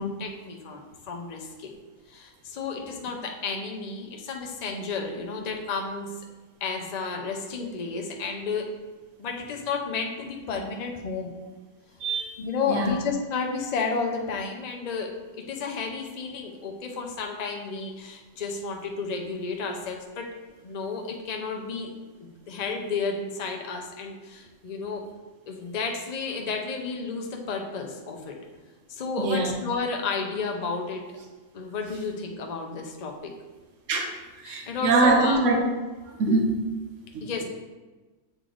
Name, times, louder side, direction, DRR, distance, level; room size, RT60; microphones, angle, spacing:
voice 1, 0.0-1.8 2.1-6.2 6.6-8.7 9.2-11.3 12.4-20.3 20.6-21.9 22.5-25.1 25.5-28.4 28.9-31.0 31.5-33.3 34.4-35.4 37.2-37.4, left 4 dB, 40° left, 2 dB, 0.6 m, -32 dB
voice 2, 12.0-12.3 12.7-12.9 29.2-29.5 33.9-34.1 34.4-35.6 36.2-36.7 37.1-37.3, right 3 dB, 75° right, 2 dB, 1.2 m, -23 dB
7.6 x 3.2 x 3.9 m, 1.2 s
omnidirectional pair, 1.3 m